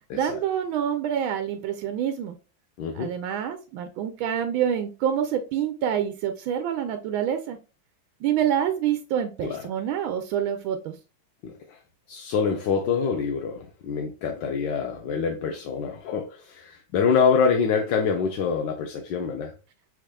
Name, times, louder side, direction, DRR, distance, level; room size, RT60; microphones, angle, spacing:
voice 1, 0.1-2.3 2.9-7.6 8.2-11.0, right 9 dB, 90° right, 1.4 m, -27 dB
voice 2, 2.8-3.1 9.4-9.7 11.4-11.8 12.1-19.5, left 6 dB, 70° left, 1.2 m, -26 dB
6.2 x 3.5 x 2.2 m
omnidirectional pair, 2.2 m